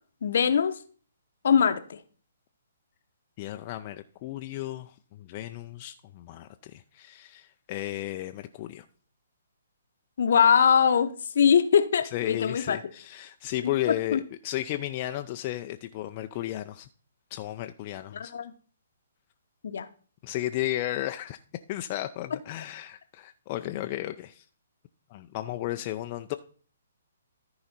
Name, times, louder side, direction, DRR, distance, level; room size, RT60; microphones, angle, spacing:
voice 1, 0.2-0.8 1.4-2.0 10.2-12.8 14.1-14.2 18.1-18.5 19.6-19.9, left 7 dB, 60° left, 0.8 m, -22 dB
voice 2, 3.4-8.9 12.1-16.9 17.3-18.3 20.2-21.4 21.7-24.4 25.1-26.3, left 14 dB, 35° left, 0.5 m, -34 dB
13.5 x 4.8 x 4.1 m
figure-of-eight pair, 130°, 0 cm